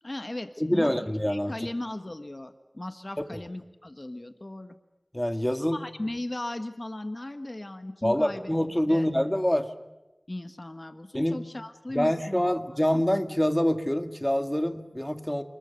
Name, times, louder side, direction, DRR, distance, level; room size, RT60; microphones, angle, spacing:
voice 1, 0.0-4.7 5.4-8.5 8.9-9.1 10.3-12.4 12.7-12.8, left 1 dB, 45° left, 8 dB, 1.4 m, -37 dB
voice 2, 0.6-1.5 5.1-5.8 8.0-9.7 11.1-11.4 11.9-15.4, equal, 15° left, 8 dB, 1.9 m, -26 dB
30.0 x 21.0 x 6.8 m, 1.0 s
wide cardioid pair, 50°, 0 cm